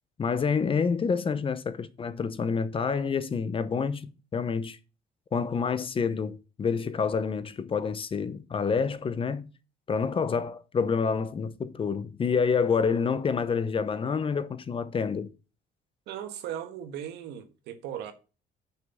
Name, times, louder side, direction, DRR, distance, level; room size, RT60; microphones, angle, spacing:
voice 1, 0.2-4.8 5.3-9.5 9.9-15.3, left 5 dB, 30° left, 0.8 m, -28 dB
voice 2, 16.1-18.1, right 10 dB, 80° right, 1.5 m, -37 dB
6.3 x 5.9 x 7.1 m
cardioid pair, 110°, 17 cm